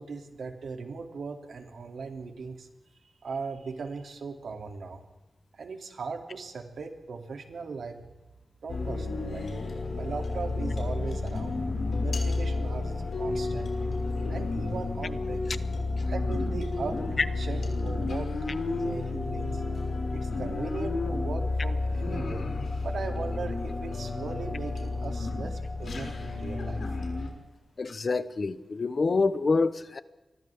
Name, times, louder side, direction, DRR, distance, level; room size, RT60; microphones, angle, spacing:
voice 1, 0.0-2.7 3.2-5.0 5.5-8.0 8.6-9.5 10.0-11.6 12.0-13.7 14.3-15.4 16.0-18.3 18.7-19.6 20.1-22.5 22.8-26.8, right 4 dB, 75° right, 2.7 m, -38 dB
sound 1, 8.7-27.3, left 3 dB, 65° left, 5.9 m, -31 dB
voice 2, 27.8-30.0, left 4 dB, 40° left, 0.9 m, -26 dB
30.0 x 25.0 x 3.6 m
wide cardioid pair, 165°, 0 cm